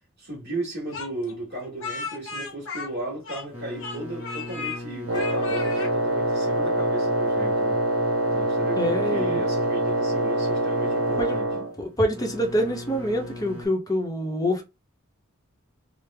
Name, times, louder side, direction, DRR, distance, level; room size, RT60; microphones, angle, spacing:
voice 1, 0.2-7.8 8.3-11.4, right 2 dB, 50° right, 1.4 m, -35 dB
Speech, 0.9-3.5 3.8-4.8 5.1-5.9, left 4 dB, 65° left, 0.9 m, -35 dB
sound 1, 3.5-13.7, left 1 dB, 10° right, 1.3 m, -38 dB
Wind instrument woodwind instrument, 5.1-11.7, right 1 dB, 75° right, 0.7 m, -25 dB
voice 2, 8.8-9.5 11.2-11.4 11.8-14.6, equal, 15° left, 0.8 m, -26 dB
3.3 x 2.0 x 3.4 m
head